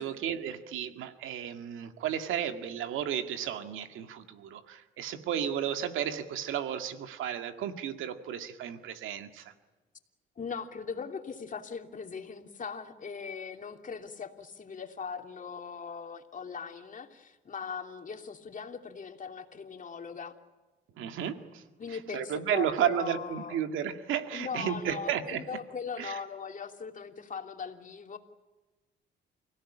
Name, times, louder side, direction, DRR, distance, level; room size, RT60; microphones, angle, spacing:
voice 1, 0.0-9.5 21.0-25.4 26.0-26.2, right 9 dB, 90° right, 8 dB, 2.0 m, -33 dB
voice 2, 10.4-20.3 21.8-23.6 24.3-28.2, left 6 dB, 40° left, 5 dB, 3.0 m, -40 dB
29.5 x 17.0 x 10.0 m, 1.2 s
cardioid pair, 90°, 20 cm